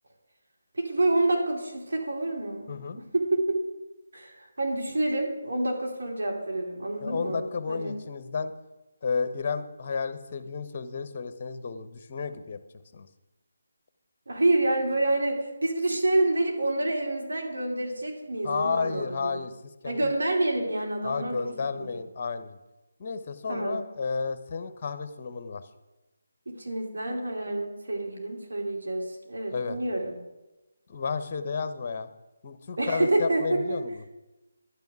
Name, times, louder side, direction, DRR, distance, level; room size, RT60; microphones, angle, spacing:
voice 1, 0.7-3.6 4.1-7.9 14.3-19.4 19.8-21.5 21.8-21.9 23.5-23.8 26.5-30.1 32.8-33.8, right 2 dB, 70° right, 0 dB, 4.2 m, -28 dB
voice 2, 2.7-3.0 7.0-8.5 9.0-12.6 12.9-13.1 18.4-19.5 19.8-20.1 21.0-22.6 23.0-25.6 29.5-29.8 30.9-32.1 32.4-34.0, left 5 dB, 35° left, 11 dB, 1.0 m, -32 dB
11.5 x 7.0 x 9.5 m, 1.0 s
figure-of-eight pair, 155°, 0 cm